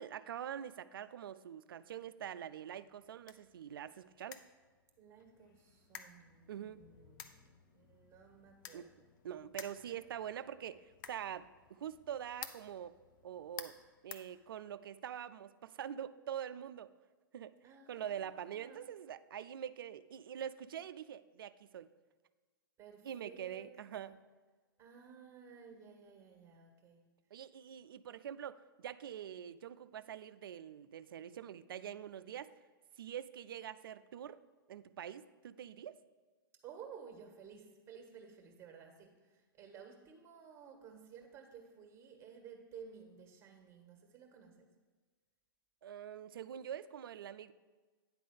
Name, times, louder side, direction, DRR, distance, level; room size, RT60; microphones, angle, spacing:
voice 1, 0.0-4.4 6.5-6.9 8.7-8.9 9.2-13.0 13.2-13.8 14.0-16.9 17.3-17.5 17.9-21.9 23.0-24.1 27.3-32.5 33.0-34.4 34.7-36.0 45.8-47.5, right 9 dB, 70° right, 15 dB, 0.4 m, -45 dB
sound 1, 2.7-15.0, left 8 dB, 60° left, 0.7 m, -54 dB
voice 2, 5.0-9.1 17.6-18.8 22.8-23.7 23.9-24.1 24.8-27.0 36.6-44.7, right 6 dB, 20° right, 3 dB, 1.5 m, -55 dB
9.7 x 3.8 x 6.6 m, 1.3 s
hypercardioid pair, 120°, 12 cm